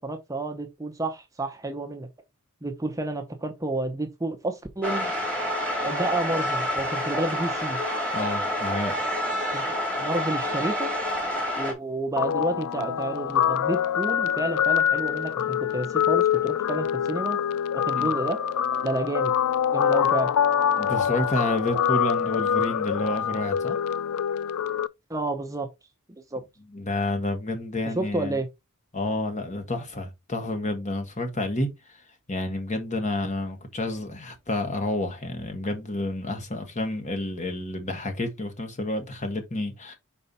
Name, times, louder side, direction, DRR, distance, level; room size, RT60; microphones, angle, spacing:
voice 1, 0.0-2.1 2.6-5.1 5.8-7.8 9.5-9.6 9.9-10.9 11.6-17.4 17.7-18.4 18.8-19.3 19.7-20.3 25.1-25.7 26.1-26.4 28.0-28.5, right 2 dB, 15° right, 0.7 m, -30 dB
sound 1, 4.8-11.7, equal, 5° left, 2.3 m, -28 dB
voice 2, 8.1-9.0 17.9-18.1 20.8-23.8 26.7-28.4 28.9-32.0 32.3-40.0, left 2 dB, 35° left, 1.5 m, -29 dB
Guitar, 12.2-24.9, left 8 dB, 85° left, 0.4 m, -25 dB
5.5 x 4.4 x 4.1 m
head